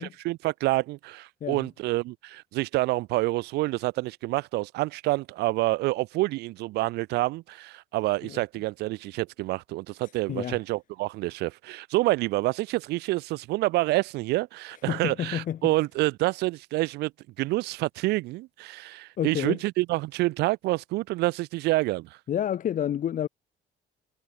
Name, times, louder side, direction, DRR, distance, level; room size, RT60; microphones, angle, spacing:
voice 1, 0.0-17.1 17.4-22.1, right 20 dB, 80° right, 0.4 m, -28 dB
voice 2, 14.9-15.7 19.2-19.6 22.3-23.3, left 10 dB, 50° left, 1.7 m, -29 dB
cardioid pair, 110°, 17 cm